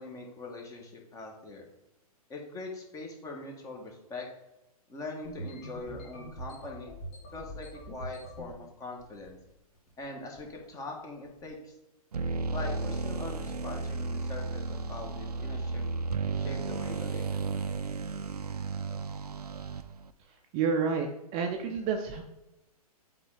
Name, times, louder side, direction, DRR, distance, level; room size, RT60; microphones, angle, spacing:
voice 1, 0.0-1.7 2.3-4.3 4.9-6.9 7.3-9.4 10.0-11.7 12.5-15.8 16.4-17.8, left 3 dB, 15° left, 1 dB, 1.6 m, -42 dB
sound 1, 5.2-8.5 9.0-9.5 9.7-10.0 10.4-10.6 11.2-11.5, right 1 dB, 35° left, 2.4 m, -43 dB
sound 2, 12.1-20.1, right 4 dB, 85° right, 0.6 m, -33 dB
voice 2, 20.5-22.2, right 5 dB, 30° right, 4 dB, 0.7 m, -29 dB
7.8 x 3.8 x 4.9 m, 0.93 s
figure-of-eight pair, 120°, 20 cm